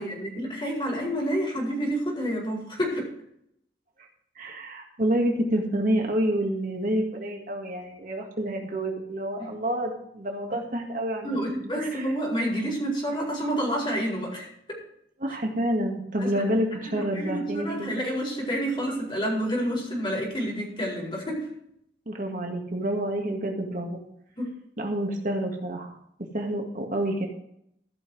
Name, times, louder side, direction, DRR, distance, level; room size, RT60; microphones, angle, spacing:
voice 1, 0.0-3.1 9.4-9.5 10.5-10.6 11.2-14.8 16.2-16.5 16.8-21.5 24.4-24.5, equal, 30° left, -2 dB, 4.5 m, -29 dB
voice 2, 4.4-11.3 11.8-12.0 15.2-17.9 22.1-24.0 24.8-25.9 26.3-27.3, right 1 dB, 50° right, 1 dB, 1.9 m, -28 dB
14.5 x 5.9 x 6.2 m, 0.74 s
head